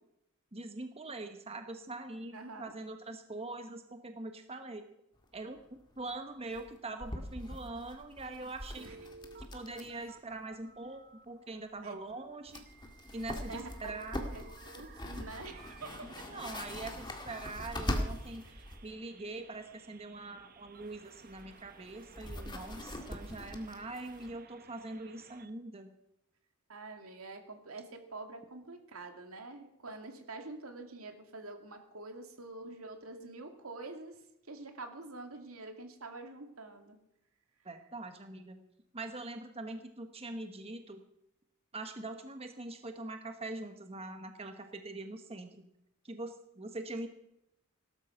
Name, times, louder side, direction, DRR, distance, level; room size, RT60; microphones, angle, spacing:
voice 1, 0.5-4.9 5.3-8.9 9.5-12.6 13.1-14.2 16.0-18.4 18.8-25.9 37.6-38.6 38.9-41.0 41.7-45.6 46.0-47.1, right 2 dB, 30° right, 7 dB, 1.2 m, -43 dB
voice 2, 2.3-2.7 8.8-9.0 10.0-10.1 11.8-12.0 13.5-13.7 14.2-16.2 18.4-18.7 26.7-34.2 34.5-37.0, right 3 dB, 85° right, 5 dB, 2.5 m, -46 dB
sound 1, 5.2-5.3 5.5-5.6 5.9-6.1 6.5-10.1 10.3-10.4 12.1-12.2 12.5-18.9 20.7-24.4, left 1 dB, 20° left, 1.9 m, -42 dB
Telephone, 8.8-11.2 12.7-25.5, right 6 dB, 45° right, 0.8 m, -57 dB
17.5 x 12.5 x 5.8 m, 0.82 s
head